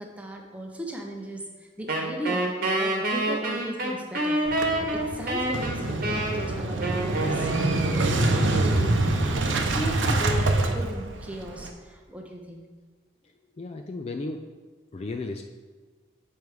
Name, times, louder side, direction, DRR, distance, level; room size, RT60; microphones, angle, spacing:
voice 1, 0.0-4.4 4.8-9.2 9.7-12.6, equal, 5° right, 1 dB, 0.7 m, -37 dB
Wind instrument woodwind instrument, 1.9-8.2, right 1 dB, 45° right, 1.1 m, -28 dB
Motorcycle / Engine starting, 4.5-11.7, right 2 dB, 75° right, 0.7 m, -25 dB
voice 2, 13.6-14.4 14.9-15.4, left 3 dB, 30° left, 5 dB, 0.3 m, -34 dB
7.2 x 4.6 x 4.7 m, 1.4 s
head